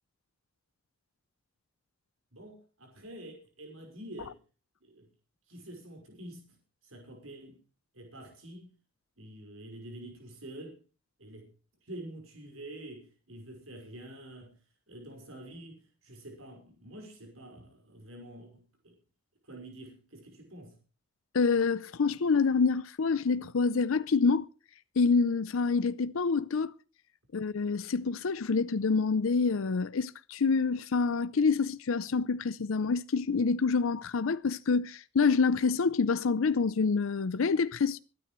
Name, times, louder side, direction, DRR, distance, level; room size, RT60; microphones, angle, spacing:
voice 1, 2.3-4.4 4.8-5.1 5.5-6.6 6.8-7.6 7.9-8.7 9.2-10.8 11.2-11.5 11.8-14.6 14.9-18.9 19.4-20.8, right 1 dB, 90° right, 5.2 m, -47 dB
voice 2, 21.3-24.5 25.0-26.7 27.3-38.0, left 4 dB, 85° left, 0.5 m, -27 dB
25.5 x 9.7 x 3.1 m
head